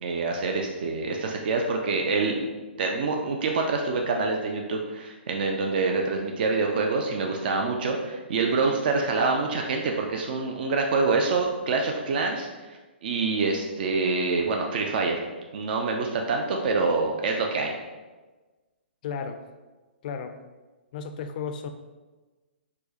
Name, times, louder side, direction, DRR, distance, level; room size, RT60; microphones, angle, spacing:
voice 1, 0.0-2.5 2.8-15.2 15.5-17.7, right 3 dB, 55° right, 2 dB, 0.4 m, -26 dB
voice 2, 19.0-19.4 20.0-20.4 20.9-21.7, left 6 dB, 45° left, 7 dB, 0.3 m, -33 dB
4.4 x 2.1 x 2.8 m, 1.2 s
hypercardioid pair, 130°, 6 cm